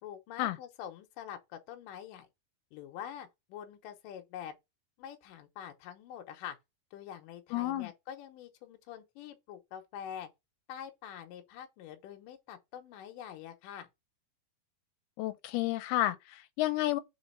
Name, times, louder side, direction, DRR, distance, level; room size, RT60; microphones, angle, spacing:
voice 1, 0.0-2.3 2.7-4.6 5.0-6.6 6.9-10.3 10.7-13.9, left 9 dB, 70° left, 2.3 m, -45 dB
voice 2, 7.5-7.9 15.2-17.0, left 15 dB, 90° left, 2.6 m, -31 dB
5.1 x 3.9 x 5.4 m
omnidirectional pair, 4.5 m